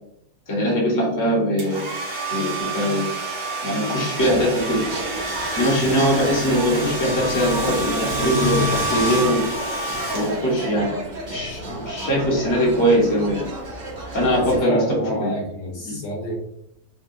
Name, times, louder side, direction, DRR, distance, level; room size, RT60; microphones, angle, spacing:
voice 1, 0.5-1.9 2.3-3.1 3.6-4.8 5.6-9.5 10.1-10.9 11.3-13.4 14.1-15.3 15.8-16.0, equal, 20° left, -3 dB, 0.6 m, -21 dB
Domestic sounds home sounds, 1.6-10.7, right 2 dB, 85° right, 1.5 m, -28 dB
sound 1, 4.2-14.6, right 1 dB, 40° right, 0.7 m, -32 dB
voice 2, 14.4-16.4, equal, 65° left, -1 dB, 0.9 m, -28 dB
3.9 x 2.2 x 2.6 m, 0.78 s
omnidirectional pair, 1.7 m